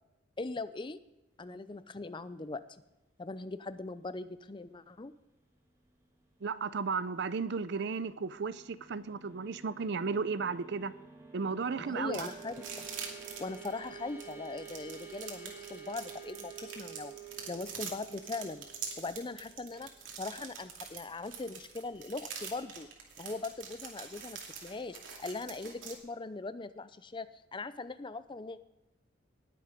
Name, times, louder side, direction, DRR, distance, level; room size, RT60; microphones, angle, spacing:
voice 1, 0.4-1.0 1.4-2.6 3.2-5.1 11.8-12.9 13.4-17.1 17.5-18.6 19.0-19.9 20.2-22.9 23.2-28.6, left 3 dB, 25° left, 13 dB, 0.5 m, -40 dB
voice 2, 6.4-10.9 11.3-12.3, right 5 dB, 60° right, 15 dB, 0.6 m, -34 dB
sound 1, 7.9-20.4, right 7 dB, 15° right, 1.7 m, -50 dB
sound 2, 12.1-25.9, right 7 dB, 85° right, 2.5 m, -44 dB
19.5 x 6.8 x 5.1 m, 0.99 s
head